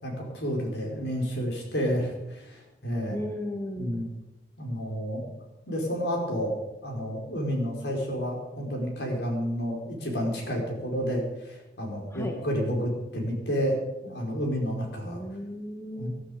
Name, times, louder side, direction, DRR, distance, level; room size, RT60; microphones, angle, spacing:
voice 1, 0.0-3.2 3.8-4.1 4.6-5.2 5.7-6.6 6.8-13.8 14.0-15.2 16.0-16.1, equal, 80° left, 0 dB, 4.7 m, -30 dB
voice 2, 3.1-4.1 12.1-12.4 15.0-16.1, left 1 dB, 15° left, 3 dB, 1.4 m, -35 dB
18.5 x 12.0 x 5.1 m, 0.98 s
head